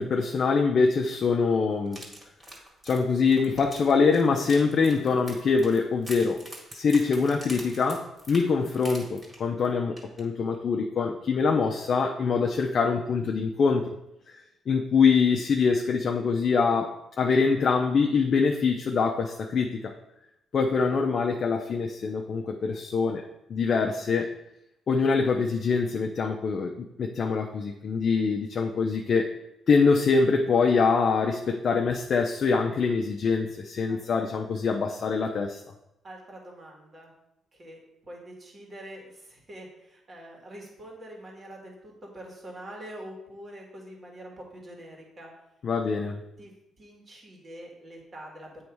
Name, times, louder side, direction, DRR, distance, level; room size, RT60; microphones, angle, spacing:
voice 1, 0.0-2.0 2.8-6.4 6.7-13.9 14.3-14.4 14.7-19.9 20.5-23.2 23.5-24.3 24.9-29.3 29.7-35.6 45.6-46.2, left 5 dB, 50° left, 2 dB, 0.5 m, -24 dB
sound 1, 1.9-9.7 10.0-10.2 10.5-10.6, right 1 dB, 20° right, 2.0 m, -45 dB
voice 2, 36.0-37.1 37.6-37.8 38.1-45.3 46.4-46.5 46.8-48.6, right 1 dB, 35° right, -1 dB, 1.9 m, -45 dB
8.5 x 3.1 x 4.6 m, 0.86 s
cardioid pair, 105°, 0 cm